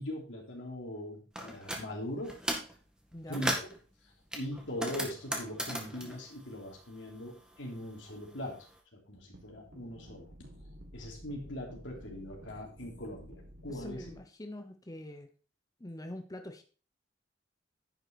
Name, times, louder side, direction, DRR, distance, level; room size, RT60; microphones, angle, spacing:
voice 1, 0.0-2.4 3.3-3.7 4.0-10.3 10.9-14.1, left 1 dB, 85° left, 0 dB, 3.3 m, -41 dB
sound 1, 1.4-1.8 2.2-2.8 3.1-3.8 4.3-7.2 7.5-8.6, right 1 dB, 5° right, 1.8 m, -37 dB
voice 2, 3.1-3.4 13.7-15.3 15.8-16.6, left 1 dB, 20° left, 6 dB, 0.9 m, -44 dB
sound 2, 9.3-14.2, equal, 65° right, 1.6 m, -52 dB
10.5 x 6.4 x 4.2 m, 0.36 s
head